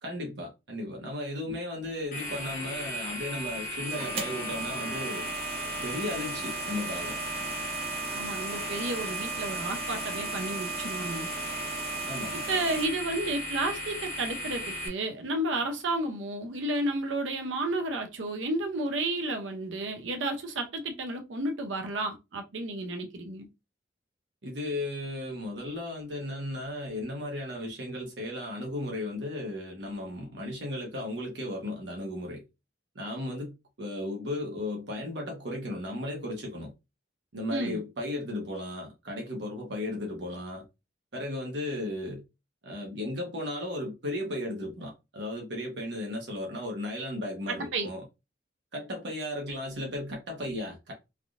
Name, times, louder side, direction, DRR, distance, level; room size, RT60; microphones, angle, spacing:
voice 1, 0.0-5.3 5.8-7.2 12.1-12.4 24.4-32.4 32.9-36.7 37.3-40.6 41.1-42.2 42.6-48.0 48.7-50.9, left 1 dB, 65° right, 0.9 m, -35 dB
sound 1, 2.1-14.9, equal, 45° left, 1.0 m, -36 dB
sound 2, 3.9-12.9, right 5 dB, 30° right, 0.5 m, -38 dB
voice 2, 8.1-11.3 12.5-23.5 37.5-37.8 47.5-47.9, right 2 dB, 85° right, 0.6 m, -32 dB
3.4 x 2.5 x 2.4 m
head